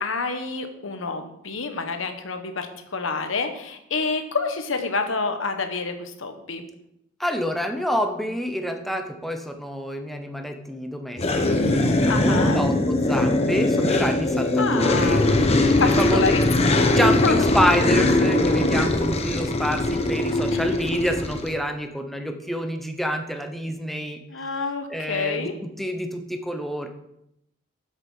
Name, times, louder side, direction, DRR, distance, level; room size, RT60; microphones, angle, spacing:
voice 1, 0.0-6.6 12.0-12.6 14.6-15.4 15.8-16.9 17.2-17.5 18.2-18.4 20.5-20.8 24.3-25.5, left 4 dB, 75° left, 7 dB, 1.2 m, -28 dB
voice 2, 7.2-15.2 15.5-16.5 17.0-24.2 24.9-26.9, equal, ahead, 4 dB, 0.9 m, -27 dB
sound 1, 11.2-21.5, left 2 dB, 30° left, 0.9 m, -21 dB
8.0 x 7.3 x 5.6 m, 0.79 s
head